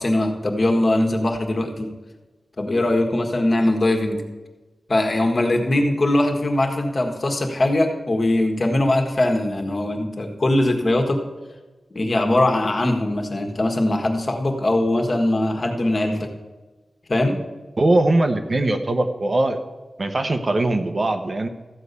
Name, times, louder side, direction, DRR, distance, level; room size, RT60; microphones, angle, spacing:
voice 1, 0.0-1.9 2.6-4.2 4.9-11.2 11.9-16.3 17.1-17.4, left 1 dB, 45° left, 3 dB, 1.6 m, -21 dB
voice 2, 17.8-19.6 20.0-21.5, right 2 dB, 40° right, 7 dB, 0.9 m, -20 dB
14.0 x 5.5 x 8.3 m, 1.2 s
wide cardioid pair, 120°, 0 cm